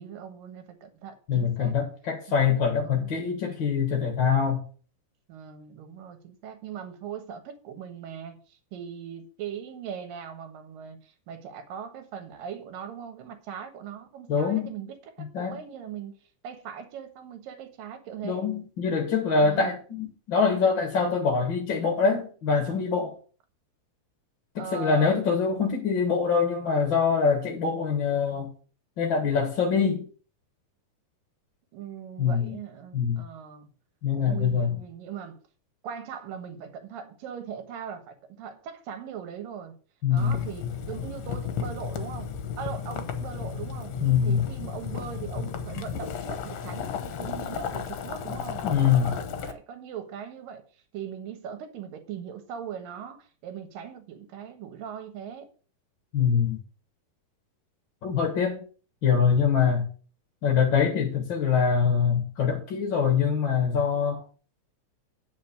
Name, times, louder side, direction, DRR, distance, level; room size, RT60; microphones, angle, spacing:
voice 1, 0.0-1.8 2.3-2.5 2.8-3.2 5.3-16.1 16.4-18.5 19.4-19.7 24.6-25.2 31.7-33.7 34.1-35.4 35.8-39.8 40.1-43.9 44.2-55.5, right 8 dB, 80° right, 3.0 m, -40 dB
voice 2, 1.3-4.6 14.3-14.7 15.3-15.6 18.2-23.1 24.5-28.5 29.0-30.1 32.2-32.6 32.9-33.2 34.0-34.7 40.0-40.4 44.0-44.4 48.6-49.2 56.1-56.6 58.0-58.6 59.0-59.9 60.4-64.2, left 6 dB, 50° left, 1.6 m, -24 dB
Boiling, 40.2-49.5, left 7 dB, 65° left, 2.0 m, -34 dB
9.2 x 5.3 x 6.7 m
omnidirectional pair, 3.9 m